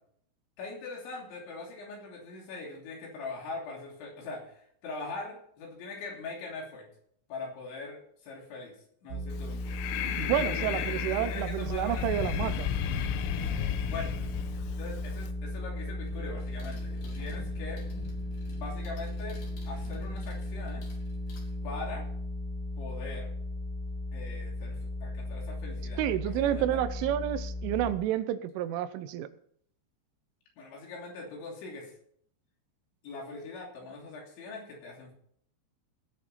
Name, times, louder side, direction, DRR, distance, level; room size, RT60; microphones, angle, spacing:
voice 1, 0.6-6.9 7.3-8.8 9.0-9.8 10.5-12.1 13.8-14.1 14.7-17.8 18.5-20.9 21.6-22.1 22.8-23.3 24.1-26.8 30.6-31.9 33.0-35.1, left 3 dB, 70° left, 0 dB, 5.1 m, -42 dB
sound 1, 9.1-27.9, left 1 dB, 60° right, 2.5 m, -36 dB
Breathing, 9.3-15.3, left 11 dB, 90° left, 3.4 m, -34 dB
voice 2, 10.2-12.7 26.0-29.3, right 11 dB, 85° right, 12 dB, 3.2 m, -30 dB
sound 2, 16.0-22.0 24.5-24.6 26.0-26.2 26.6-27.5, left 4 dB, 55° left, 3.7 m, -51 dB
18.5 x 7.1 x 5.6 m, 0.65 s
omnidirectional pair, 5.6 m